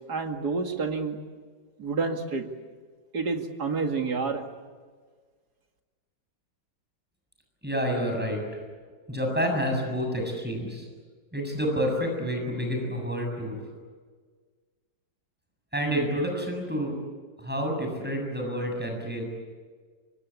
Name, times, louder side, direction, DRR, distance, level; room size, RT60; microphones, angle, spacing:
voice 1, 0.1-1.2 1.8-2.4 3.1-4.4, right 4 dB, 60° right, 4 dB, 2.8 m, -29 dB
voice 2, 7.6-8.6 9.1-10.9 11.3-13.5 15.7-17.0 17.4-19.2, equal, 5° right, 2 dB, 7.4 m, -29 dB
25.0 x 24.5 x 8.6 m, 1.5 s
omnidirectional pair, 1.9 m